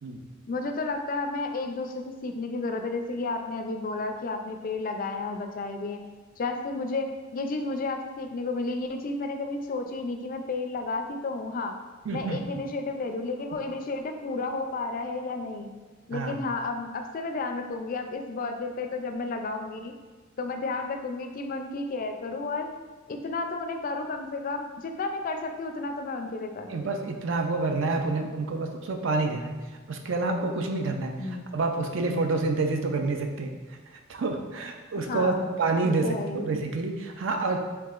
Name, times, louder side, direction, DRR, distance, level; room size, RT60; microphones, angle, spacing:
voice 1, 0.4-6.0 6.4-11.7 12.1-15.7 16.1-19.9 20.4-22.7 23.1-26.7 31.2-31.5 35.0-35.6 35.8-36.5, left 3 dB, 45° left, 5 dB, 0.4 m, -32 dB
voice 2, 12.0-12.5 16.1-16.4 26.7-37.6, right 3 dB, 70° right, 4 dB, 0.5 m, -28 dB
4.6 x 3.5 x 2.4 m, 1.3 s
head